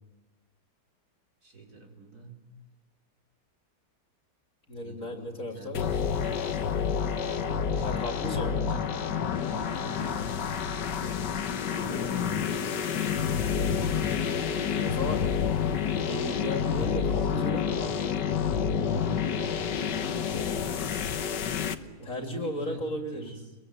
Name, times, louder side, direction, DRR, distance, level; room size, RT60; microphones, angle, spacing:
voice 1, 1.4-2.5 4.8-9.0 9.4-16.2 16.6-17.3 19.9-22.9 23.1-23.6, right 3 dB, 60° right, 1 dB, 5.1 m, -47 dB
voice 2, 4.7-5.8 7.8-8.6 11.7-12.4 14.8-15.2 16.1-18.1 22.0-23.3, left 1 dB, 50° left, 3 dB, 3.3 m, -35 dB
sound 1, 5.7-21.7, left 7 dB, 80° left, 1.8 m, -29 dB
28.0 x 22.5 x 8.9 m, 1.2 s
omnidirectional pair, 1.8 m